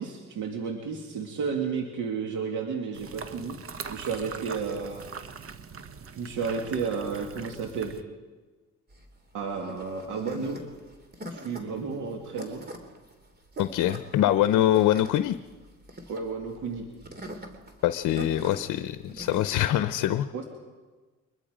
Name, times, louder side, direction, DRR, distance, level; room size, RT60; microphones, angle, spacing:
voice 1, 0.0-3.6 3.9-5.0 6.1-7.9 9.3-10.6 11.3-12.6 16.1-16.9 20.3-20.4, right 5 dB, 80° right, 2 dB, 2.3 m, -32 dB
sound 1, 2.9-8.0, right 5 dB, 50° right, 1.3 m, -42 dB
sound 2, 8.9-19.5, equal, 35° right, 3.0 m, -42 dB
voice 2, 13.6-15.4 17.8-20.4, left 12 dB, 80° left, 11 dB, 0.7 m, -24 dB
23.5 x 21.5 x 5.1 m, 1.3 s
cardioid pair, 90°, 30 cm